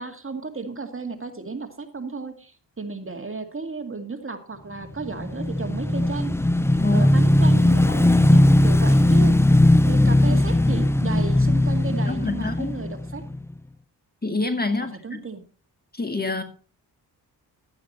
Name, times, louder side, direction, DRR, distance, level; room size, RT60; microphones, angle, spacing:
voice 1, 0.0-6.4 6.9-9.4 9.8-13.2 15.0-15.4, right 4 dB, 30° right, 2.2 m, -33 dB
Motorcycle / Engine, 5.0-13.5, left 1 dB, 5° left, 0.5 m, -18 dB
voice 2, 12.1-12.8 14.2-15.2 15.9-16.4, left 3 dB, 20° left, 1.8 m, -26 dB
12.5 x 8.7 x 4.3 m
cardioid pair, 55°, 42 cm